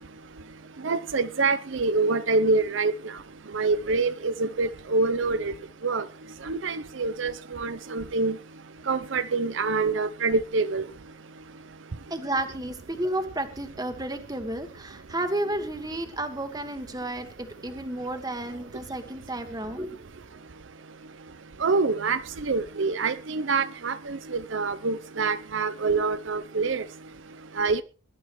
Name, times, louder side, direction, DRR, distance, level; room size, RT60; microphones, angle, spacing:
voice 1, 0.8-2.9 3.5-5.5 5.8-6.0 6.5-8.4 8.9-10.8 21.6-22.2 22.5-26.8 27.6-27.8, right 3 dB, 65° right, 0.7 m, -26 dB
voice 2, 12.1-20.0, right 1 dB, 20° right, 1.6 m, -32 dB
21.0 x 11.5 x 3.1 m
head